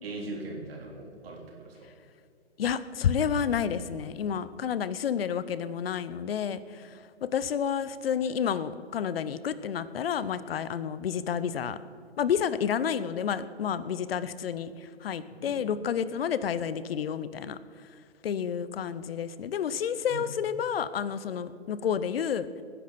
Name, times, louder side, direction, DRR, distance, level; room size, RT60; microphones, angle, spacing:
voice 1, 0.0-1.9 15.4-15.6 20.1-20.2, right 2 dB, 55° right, -1 dB, 3.9 m, -40 dB
voice 2, 2.6-11.8 12.2-17.6 18.2-22.5, left 8 dB, 55° left, 15 dB, 0.8 m, -30 dB
19.5 x 10.0 x 4.2 m, 2.3 s
hypercardioid pair, 130°, 34 cm